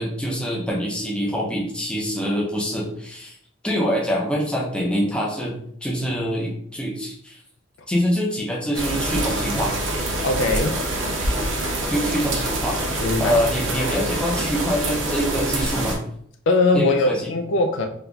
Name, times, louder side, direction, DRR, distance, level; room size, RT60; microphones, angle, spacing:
voice 1, 0.0-3.3 3.6-5.6 5.8-7.4 7.9-9.7 11.9-12.8 13.2-16.0 16.7-17.3, equal, 5° left, -3 dB, 0.5 m, -25 dB
sound 1, 8.7-16.0, right 1 dB, 70° right, 0.7 m, -25 dB
voice 2, 10.2-10.8 13.0-13.4 16.5-17.9, left 2 dB, 65° left, 6 dB, 0.4 m, -20 dB
3.6 x 2.7 x 2.3 m, 0.66 s
head